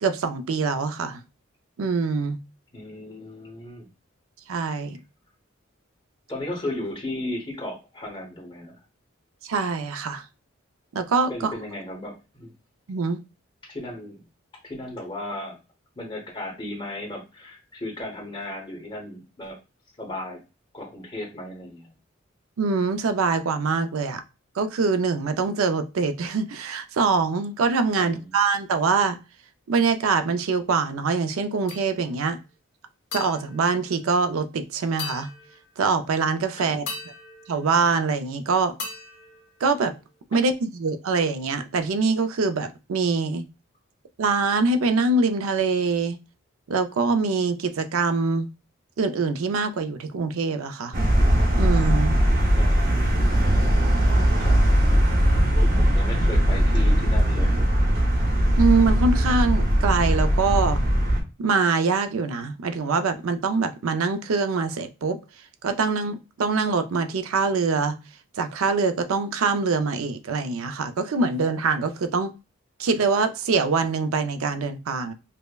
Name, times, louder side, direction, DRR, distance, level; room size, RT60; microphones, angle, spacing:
voice 1, 0.0-1.2 1.8-2.4 4.5-5.0 9.4-10.2 10.9-11.5 12.9-13.2 22.6-24.2 24.6-29.2 29.7-32.4 33.1-35.3 35.8-36.8 37.5-38.7 39.6-39.9 40.3-43.4 44.2-46.2 46.7-48.5 49.0-51.0 51.6-52.2 58.6-60.8 61.4-65.2 65.6-68.0 68.4-72.3 72.8-75.1, right 4 dB, 80° right, 0.4 m, -24 dB
voice 2, 2.7-3.9 6.3-8.8 11.3-12.5 13.6-14.2 14.6-15.6 16.0-19.6 20.0-20.4 20.7-21.9 28.0-28.3 36.6-36.8 40.3-40.4 52.5-53.7 54.4-54.6 55.6-57.6, left 1 dB, 25° left, 1.0 m, -35 dB
sound 1, 31.7-32.3 33.1-34.5 35.0-36.0 36.9-38.3 38.8-40.2, left 4 dB, 60° left, 1.1 m, -40 dB
sound 2, 50.9-61.2, equal, 45° right, 0.8 m, -20 dB
5.2 x 2.1 x 2.3 m
head